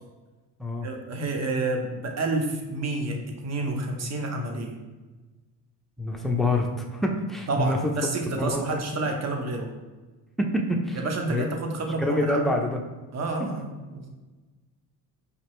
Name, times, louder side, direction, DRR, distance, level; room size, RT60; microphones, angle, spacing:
voice 1, 0.8-4.8 7.5-9.7 10.9-12.5 13.1-13.7 13.9-14.1, right 2 dB, 35° right, 3 dB, 0.9 m, -29 dB
voice 2, 6.0-7.9 8.3-8.8 10.4-11.0 11.3-11.4 12.0-12.8, left 1 dB, ahead, 1 dB, 0.6 m, -26 dB
5.1 x 2.8 x 3.1 m, 1.2 s
supercardioid pair, 75°, 44 cm